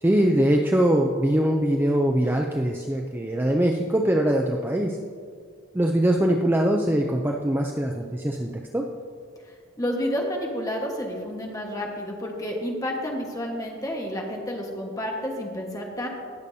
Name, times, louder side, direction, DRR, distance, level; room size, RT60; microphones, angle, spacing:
voice 1, 0.0-5.0 5.7-8.8, right 1 dB, 10° right, 1 dB, 0.4 m, -22 dB
voice 2, 9.8-16.1, equal, 15° left, 0 dB, 1.3 m, -30 dB
18.5 x 7.0 x 2.7 m, 2.1 s
head